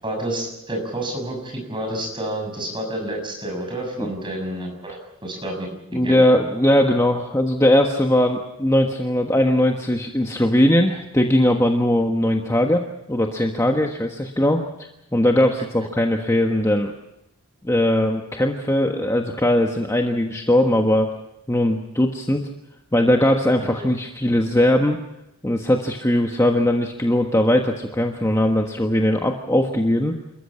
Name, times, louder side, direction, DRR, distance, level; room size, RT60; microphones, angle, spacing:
voice 1, 0.0-6.2, right 1 dB, 20° right, 2 dB, 6.6 m, -29 dB
voice 2, 5.9-16.9 17.6-21.1 21.5-22.5 22.9-25.0 25.4-30.2, left 1 dB, 15° left, 3 dB, 1.3 m, -20 dB
28.5 x 14.0 x 8.7 m, 0.87 s
head